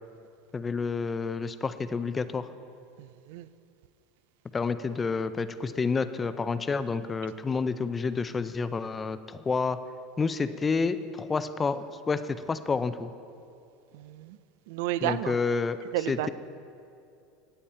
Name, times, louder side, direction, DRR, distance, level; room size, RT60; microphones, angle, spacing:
voice 1, 0.5-2.5 4.5-9.8 10.2-13.1 15.0-15.8 16.1-16.3, left 4 dB, 20° left, 12 dB, 0.5 m, -29 dB
voice 2, 3.0-3.5 13.9-14.4 14.7-15.4 15.9-16.3, right 14 dB, 75° right, 15 dB, 0.4 m, -32 dB
16.0 x 8.7 x 4.4 m, 2.5 s
supercardioid pair, 130°, 0 cm